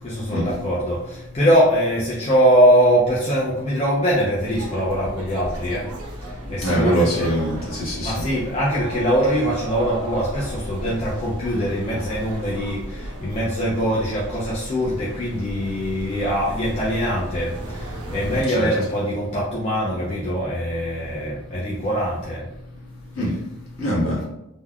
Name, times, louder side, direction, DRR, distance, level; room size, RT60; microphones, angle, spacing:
voice 1, 0.0-5.9 6.2-7.3 8.0-22.4, equal, 30° left, -6 dB, 0.4 m, -22 dB
sound 1, 4.4-18.4, right 1 dB, 85° right, 0.6 m, -35 dB
voice 2, 6.6-8.1 18.5-18.7 23.2-23.3 23.8-24.2, equal, 70° left, -6 dB, 1.2 m, -22 dB
3.4 x 2.2 x 2.3 m, 0.86 s
head